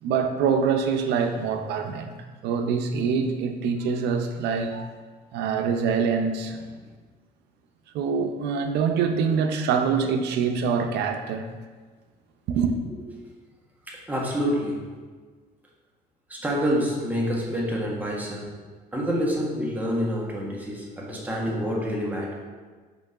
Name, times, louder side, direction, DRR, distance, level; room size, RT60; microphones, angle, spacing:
voice 1, 0.0-2.1 2.4-5.0 5.3-6.6 7.9-11.5 12.5-12.7, right 6 dB, 80° right, 6 dB, 0.6 m, -25 dB
voice 2, 13.9-14.9 16.3-18.5 18.9-22.3, equal, 10° right, -3 dB, 1.5 m, -27 dB
6.2 x 3.0 x 5.7 m, 1.4 s
cardioid pair, 110°, 17 cm